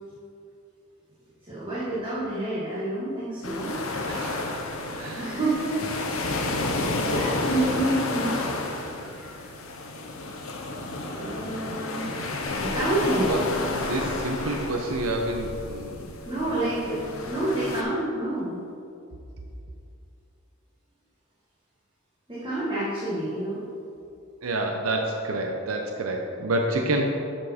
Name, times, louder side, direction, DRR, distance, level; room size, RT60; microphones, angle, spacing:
voice 1, 1.5-3.9 5.1-5.8 7.0-8.4 9.1-9.5 11.0-12.1 12.5-13.3 16.2-18.6 22.3-23.6, right 1 dB, 25° right, -9 dB, 1.4 m, -28 dB
sound 1, 3.4-17.8, left 2 dB, 75° left, 0.8 m, -31 dB
voice 2, 4.1-4.6 5.0-5.4 5.8-5.9 6.2-6.4 13.3-13.5 13.7-16.2 16.5-16.6 24.4-27.0, right 1 dB, 85° right, 2 dB, 0.7 m, -29 dB
11.0 x 4.6 x 4.2 m, 2.6 s
head